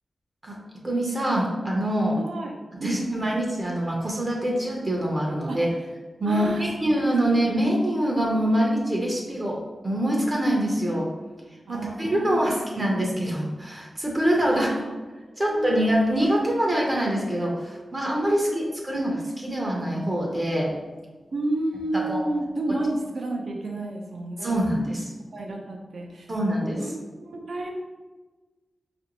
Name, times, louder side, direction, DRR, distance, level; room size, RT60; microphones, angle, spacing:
voice 1, 0.8-2.2 2.7-5.7 6.2-9.6 9.8-11.1 11.7-14.7 15.4-20.7 21.9-22.2 24.4-25.1 26.3-26.8, right 1 dB, 25° right, -2 dB, 0.6 m, -24 dB
voice 2, 2.2-2.5 2.8-3.2 5.5-5.6 6.2-6.9 7.3-7.4 11.7-12.8 14.5-14.9 15.4-15.9 18.4-19.1 21.3-24.6 25.3-26.3 26.8-27.7, right 2 dB, 65° right, 1 dB, 0.6 m, -31 dB
5.1 x 2.5 x 2.9 m, 1.3 s
wide cardioid pair, 170°, 0 cm